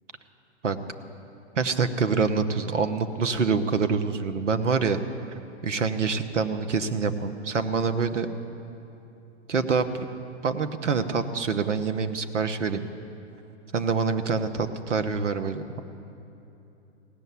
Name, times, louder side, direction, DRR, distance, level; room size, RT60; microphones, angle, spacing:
voice 1, 1.6-5.0 5.6-8.3 9.5-10.1 10.4-12.9 13.7-15.8, right 5 dB, 85° right, 9 dB, 1.0 m, -26 dB
17.0 x 6.7 x 9.4 m, 2.9 s
hypercardioid pair, 130°, 35 cm